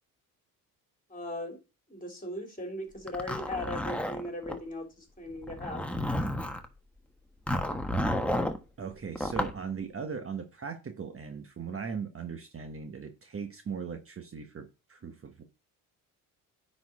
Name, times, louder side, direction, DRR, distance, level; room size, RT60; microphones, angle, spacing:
voice 1, 1.1-1.6 1.9-5.8, left 1 dB, 20° left, 3.1 m, -38 dB
Zipper (clothing), 3.1-4.6 5.4-6.7 7.5-8.6 9.2-9.6, left 1 dB, 5° left, 1.3 m, -31 dB
voice 2, 8.8-15.4, right 6 dB, 30° right, 1.2 m, -39 dB
9.4 x 4.4 x 4.2 m
hypercardioid pair, 60°, 43 cm